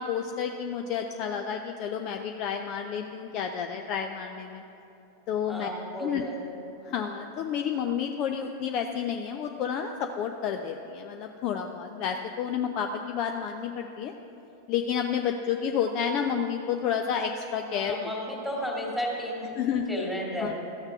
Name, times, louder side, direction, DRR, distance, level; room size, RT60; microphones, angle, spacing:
voice 1, 0.0-4.6 5.3-5.7 6.0-6.2 6.8-14.1 14.7-18.0 19.6-19.9 20.4-20.5, left 7 dB, 40° left, 5 dB, 0.5 m, -30 dB
voice 2, 5.5-6.4 17.7-19.5 19.9-20.6, equal, 10° left, -3 dB, 2.5 m, -33 dB
14.5 x 6.6 x 5.9 m, 3.0 s
figure-of-eight pair, 90°, 0 cm